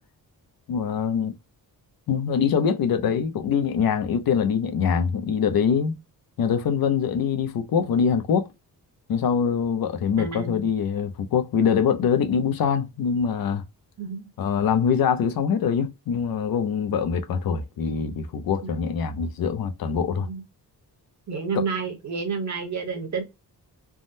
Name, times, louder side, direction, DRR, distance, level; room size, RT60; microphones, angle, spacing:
voice 1, 0.7-1.3 2.1-6.0 6.4-8.5 9.1-13.6 14.4-20.3 21.5-21.6, left 7 dB, 65° left, 0.6 m, -24 dB
voice 2, 10.2-10.6 14.0-14.3 18.6-18.7 20.1-20.4 21.3-23.2, right 5 dB, 45° right, 1.0 m, -30 dB
3.5 x 2.0 x 2.6 m
wide cardioid pair, 150°, 38 cm